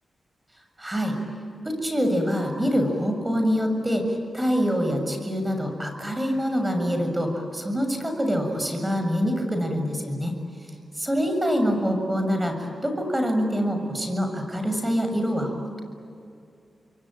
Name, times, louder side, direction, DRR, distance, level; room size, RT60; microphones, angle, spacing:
voice 1, 0.8-1.2 1.6-10.3 11.0-15.8, equal, 15° right, 5 dB, 7.0 m, -25 dB
28.5 x 23.0 x 9.0 m, 2.5 s
cardioid pair, 60°, 0 cm